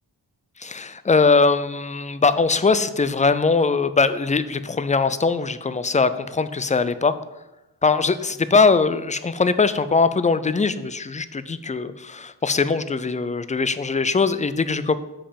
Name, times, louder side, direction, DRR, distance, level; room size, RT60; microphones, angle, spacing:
voice 1, 0.6-7.2 7.8-15.0, left 4 dB, 20° left, 13 dB, 0.4 m, -21 dB
8.5 x 5.3 x 7.5 m, 0.98 s
wide cardioid pair, 175°, 41 cm